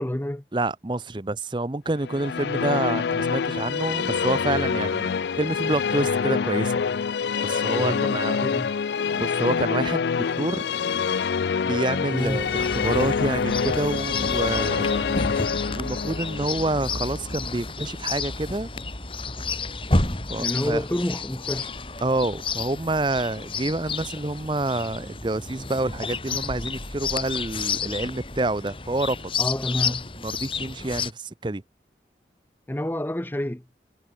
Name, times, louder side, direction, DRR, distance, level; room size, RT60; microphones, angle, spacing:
voice 1, 0.0-0.4 7.6-8.7 12.1-12.5 20.0-21.7 29.4-30.1 32.7-33.6, left 1 dB, 10° left, 0.6 m, -29 dB
voice 2, 0.5-6.8 7.4-8.4 9.1-10.1 10.4-10.6 11.6-15.3 15.7-18.7 20.3-20.8 22.0-29.3 30.2-31.6, right 2 dB, 25° right, 0.6 m, -28 dB
Musical instrument, 2.0-17.4, left 6 dB, 75° left, 0.4 m, -26 dB
Chirp tweet, 12.2-31.1, left 4 dB, 30° left, 3.1 m, -31 dB
head